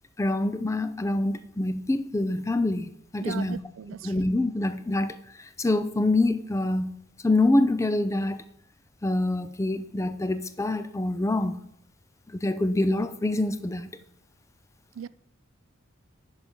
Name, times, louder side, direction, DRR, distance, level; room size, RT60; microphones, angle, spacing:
voice 1, 0.2-3.6 4.0-7.0 7.2-8.4 9.0-11.6 12.3-14.0, left 2 dB, 15° left, 0.4 m, -26 dB
voice 2, 3.2-4.1 15.0-15.1, right 7 dB, 85° right, 0.4 m, -37 dB
9.6 x 4.9 x 5.2 m
head